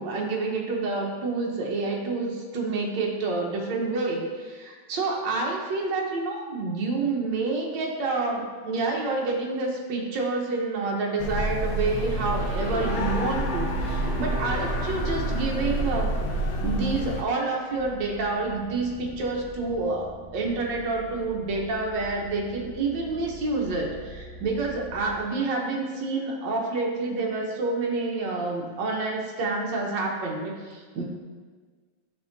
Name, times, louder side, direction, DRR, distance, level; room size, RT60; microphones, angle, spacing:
voice 1, 0.0-16.1 16.6-31.1, right 3 dB, 70° right, -1 dB, 1.6 m, -28 dB
sound 1, 11.2-17.2, right 1 dB, 90° left, 1.5 m, -28 dB
sound 2, 11.9-18.2, right 3 dB, 85° right, 1.5 m, -40 dB
sound 3, 17.7-25.2, right 2 dB, 70° left, 1.5 m, -44 dB
10.5 x 3.6 x 2.7 m, 1.5 s
omnidirectional pair, 2.1 m